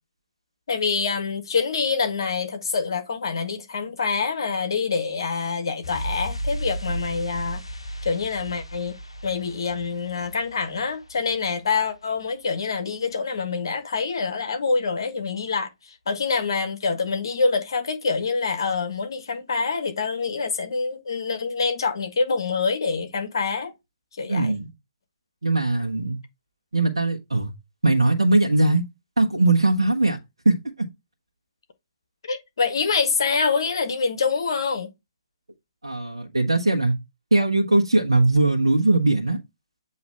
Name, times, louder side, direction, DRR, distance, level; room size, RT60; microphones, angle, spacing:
voice 1, 0.7-7.6 8.0-8.9 9.2-23.7 24.2-24.5 32.2-34.9, left 5 dB, 55° left, 1.5 m, -26 dB
sound 1, 5.8-12.3 12.6-12.7, right 1 dB, 80° left, 0.8 m, -35 dB
voice 2, 24.3-24.7 25.4-26.2 26.7-27.5 27.8-28.8 29.2-30.2 30.4-30.6 35.8-36.9 37.3-39.4, right 2 dB, 70° right, 1.2 m, -20 dB
7.6 x 3.1 x 4.5 m
figure-of-eight pair, 130°, 3 cm